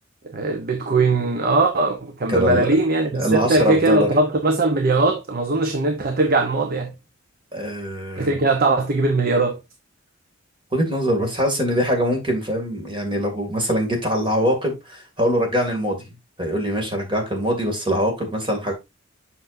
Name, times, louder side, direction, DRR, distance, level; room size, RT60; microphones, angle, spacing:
voice 1, 0.3-7.0 8.2-9.6, right 3 dB, 45° right, 0.8 m, -20 dB
voice 2, 2.3-2.7 3.2-4.1 7.5-8.4 10.7-16.0 16.4-18.7, equal, 25° right, 2.4 m, -23 dB
7.9 x 6.0 x 2.6 m
head